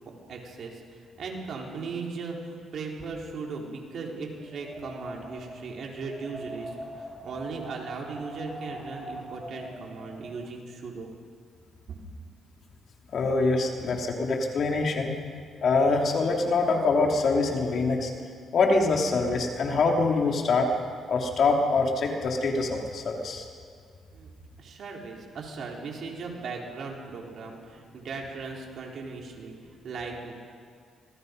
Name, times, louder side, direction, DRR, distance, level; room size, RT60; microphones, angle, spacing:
voice 1, 0.3-11.1 24.1-24.3 24.6-30.3, right 4 dB, 60° right, -1 dB, 4.2 m, -38 dB
Wind, 4.4-10.5, right 1 dB, 5° right, 1.9 m, -42 dB
voice 2, 13.1-15.2 15.6-18.1 18.5-20.7 21.1-23.4, left 3 dB, 60° left, 1 dB, 3.1 m, -24 dB
26.5 x 20.0 x 5.4 m, 2.1 s
cardioid pair, 90°, 0 cm